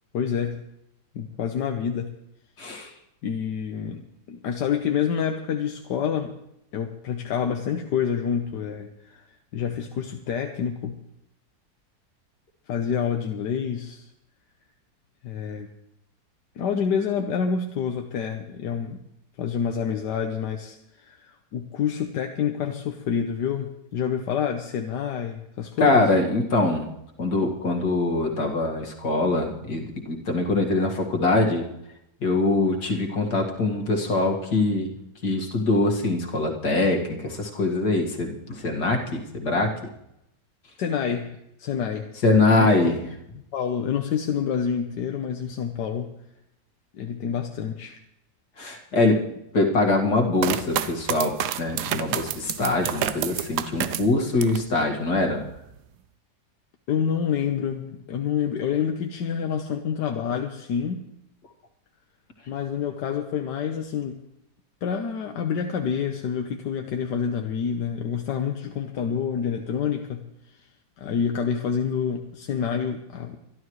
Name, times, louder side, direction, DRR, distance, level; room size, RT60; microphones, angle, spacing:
voice 1, 0.1-0.6 1.1-2.2 3.2-6.3 6.7-11.0 12.7-14.1 15.2-15.7 16.5-19.0 19.4-26.1 40.8-42.9 43.5-46.1 46.9-48.0 56.9-61.0 62.5-64.2 64.8-70.3 70.6-70.7 71.0-73.4, left 7 dB, 85° left, 4 dB, 1.6 m, -28 dB
voice 2, 2.6-2.9 25.8-26.9 27.2-31.7 32.2-34.9 35.2-39.7 42.2-43.0 48.6-49.2 49.5-55.5, left 2 dB, 70° left, 1 dB, 2.6 m, -23 dB
sound 1, 50.4-54.7 55.1-55.8, right 10 dB, 75° right, 1.2 m, -29 dB
25.0 x 12.0 x 3.2 m, 0.81 s
omnidirectional pair, 1.8 m